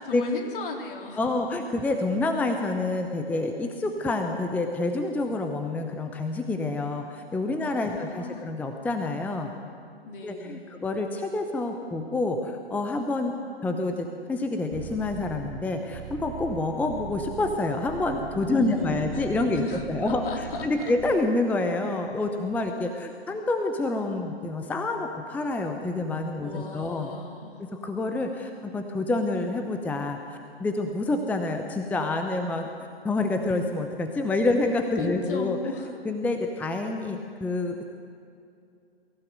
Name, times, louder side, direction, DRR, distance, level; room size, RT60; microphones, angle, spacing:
voice 1, 0.0-1.5 7.6-8.5 10.0-10.8 18.5-19.3 19.5-20.9 26.4-27.6 35.0-35.9, left 4 dB, 55° left, 2 dB, 3.4 m, -36 dB
voice 2, 1.2-9.5 10.2-13.3 13.6-27.1 27.7-30.2 30.6-32.7 33.0-35.6 36.0-37.8, left 2 dB, 5° left, 5 dB, 0.8 m, -28 dB
sound 1, 14.7-21.2, right 12 dB, 25° right, 0.8 m, -41 dB
23.5 x 15.5 x 8.0 m, 2.5 s
figure-of-eight pair, 125°, 33 cm